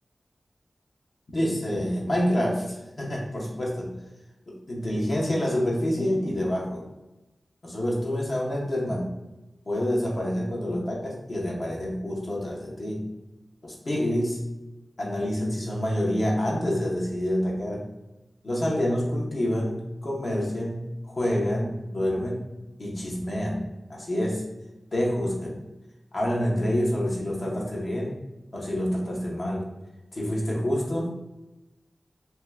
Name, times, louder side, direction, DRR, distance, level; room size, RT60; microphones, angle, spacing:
voice 1, 1.3-3.9 4.5-6.8 7.6-9.1 9.7-13.1 13.6-14.4 15.0-17.9 18.4-22.5 22.8-24.4 24.9-25.6 26.1-28.1 28.5-29.7 30.1-31.1, equal, 60° left, -3 dB, 0.9 m, -27 dB
2.7 x 2.2 x 3.4 m, 1.0 s
cardioid pair, 40°, 0 cm